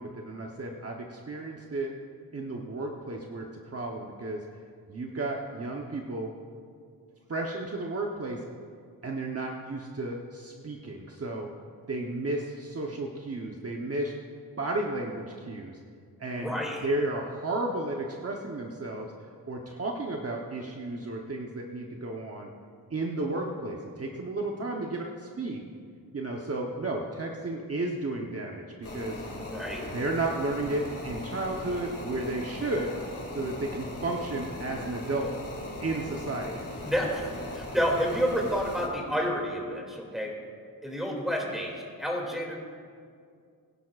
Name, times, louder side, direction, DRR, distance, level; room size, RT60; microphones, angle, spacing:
voice 1, 0.0-1.9 2.3-4.4 4.9-6.3 7.3-8.4 9.0-11.5 11.9-14.1 14.6-15.8 16.2-16.5 16.8-19.1 19.5-22.5 22.9-25.6 26.1-29.2 29.9-32.9 33.3-35.3 35.8-36.6, right 2 dB, 40° right, 0 dB, 1.0 m, -33 dB
voice 2, 16.3-16.9 29.5-29.8 36.8-37.3 37.5-40.3 40.8-42.6, equal, ahead, -2 dB, 2.6 m, -29 dB
sound 1, 28.8-38.9, left 2 dB, 40° left, 2.4 m, -39 dB
22.0 x 11.0 x 2.5 m, 2.2 s
wide cardioid pair, 115°, 36 cm